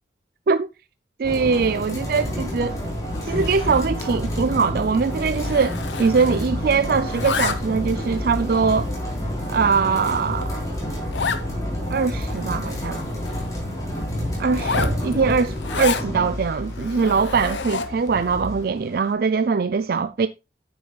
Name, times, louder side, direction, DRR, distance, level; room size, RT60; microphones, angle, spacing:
sound 1, 1.2-19.1, equal, 20° left, 4.1 m, -29 dB
voice 1, 1.2-2.8 3.2-8.9 9.5-10.5 11.9-13.0 14.4-20.3, right 5 dB, 55° right, 0.4 m, -22 dB
Zipper (clothing), 3.1-4.2 4.5-4.7 4.9-6.6 6.9-7.9 8.5-8.6 9.2-9.3 9.7-9.8 10.1-10.2 10.4-10.5 11.1-11.5 11.9-12.0 12.2-13.5 14.5-16.1 16.7-18.1, left 5 dB, 90° left, 0.9 m, -30 dB
sound 2, 3.3-18.6, left 1 dB, 55° left, 0.7 m, -36 dB
9.4 x 8.6 x 2.3 m
head